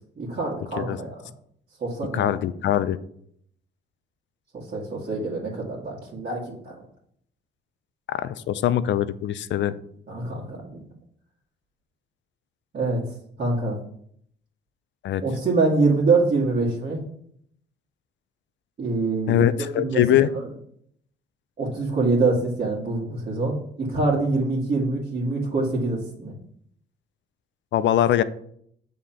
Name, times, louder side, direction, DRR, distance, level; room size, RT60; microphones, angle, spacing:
voice 1, 0.2-1.2 1.8-2.3 4.5-6.8 10.1-10.8 12.7-13.0 13.4-13.8 15.2-17.0 18.8-20.0 20.3-20.5 21.6-26.3, right 3 dB, 45° right, -5 dB, 2.1 m, -25 dB
voice 2, 2.1-3.0 8.1-9.7 15.0-15.2 19.3-20.3 27.7-28.2, left 11 dB, 65° left, 14 dB, 0.5 m, -22 dB
7.4 x 3.8 x 5.8 m, 0.67 s
cardioid pair, 90°, 20 cm